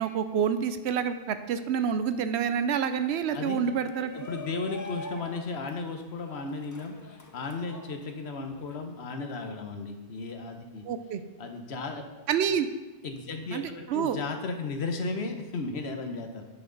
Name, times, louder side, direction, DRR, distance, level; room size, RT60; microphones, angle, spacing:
voice 1, 0.0-4.1 10.8-11.2 12.3-12.7 13.5-14.2, right 7 dB, 80° right, 10 dB, 0.8 m, -28 dB
Shout, 3.6-8.8, left 1 dB, 25° left, 0.4 m, -43 dB
voice 2, 4.1-10.8 11.4-12.3 13.0-16.4, left 3 dB, 70° left, 5 dB, 1.2 m, -35 dB
10.5 x 6.0 x 3.9 m, 1.2 s
omnidirectional pair, 1.1 m